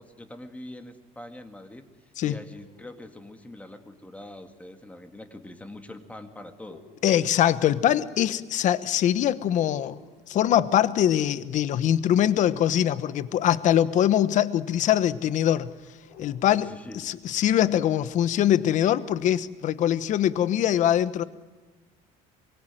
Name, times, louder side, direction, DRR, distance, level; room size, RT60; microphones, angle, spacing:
voice 1, 0.0-1.9 2.2-6.8 16.5-17.1, left 1 dB, 10° left, 7 dB, 2.2 m, -43 dB
sound 1, 2.5-4.1 6.6-7.8 9.7-10.5 12.9-14.0 16.0-17.2, left 7 dB, 75° left, 6.7 m, -53 dB
voice 2, 7.0-9.9 10.3-15.7 16.2-21.2, left 11 dB, 50° left, 15 dB, 1.1 m, -23 dB
24.5 x 23.0 x 9.2 m, 1.3 s
cardioid pair, 135°, 16 cm